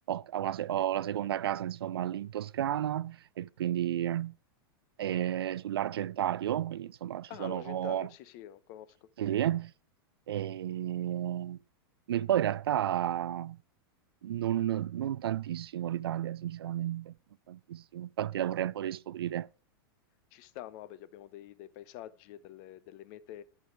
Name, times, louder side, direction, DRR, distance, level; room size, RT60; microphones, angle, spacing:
voice 1, 0.1-4.3 5.0-8.1 9.2-9.7 10.3-11.6 12.1-13.6 14.2-17.1 17.5-19.5, right 11 dB, 90° right, 0.4 m, -32 dB
voice 2, 7.3-9.1 20.3-23.4, left 12 dB, 50° left, 0.9 m, -46 dB
11.0 x 6.3 x 4.8 m
hypercardioid pair, 120°, 12 cm